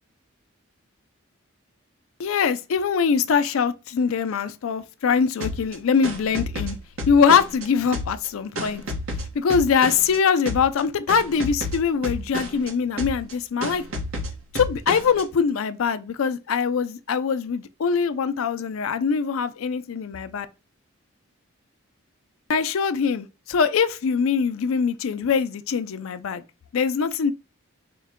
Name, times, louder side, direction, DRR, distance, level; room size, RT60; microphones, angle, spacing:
voice 1, 2.2-6.8 7.1-8.8 9.3-13.8 14.5-20.5 22.5-26.4 26.7-27.3, left 6 dB, 80° left, 0.4 m, -23 dB
sound 1, 5.4-7.7 7.9-10.2 10.5-10.8 11.1-12.7 13.0-13.3 13.6-15.2, left 1 dB, 80° right, 1.1 m, -31 dB
4.5 x 2.2 x 3.5 m
head